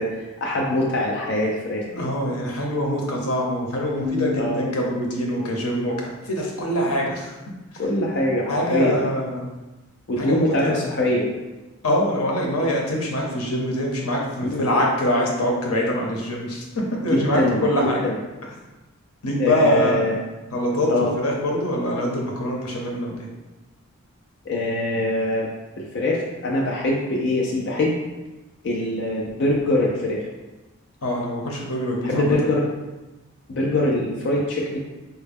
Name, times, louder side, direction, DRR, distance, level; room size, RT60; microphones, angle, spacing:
voice 1, 0.0-2.1 4.4-4.6 7.8-9.0 10.1-11.3 14.4-14.6 17.1-18.1 19.4-20.1 20.9-21.1 24.5-25.5 25.8-27.9 28.6-30.2 32.0-32.7 33.5-34.8, left 1 dB, 55° left, -3 dB, 0.4 m, -23 dB
voice 2, 1.8-7.4 8.5-9.5 10.2-10.8 11.8-18.1 19.2-20.2 20.5-23.3 31.0-32.5, equal, 90° left, -1 dB, 0.8 m, -24 dB
Keyboard (musical), 4.0-5.8, left 7 dB, 70° right, 0.6 m, -32 dB
4.6 x 2.1 x 3.4 m, 1.1 s
head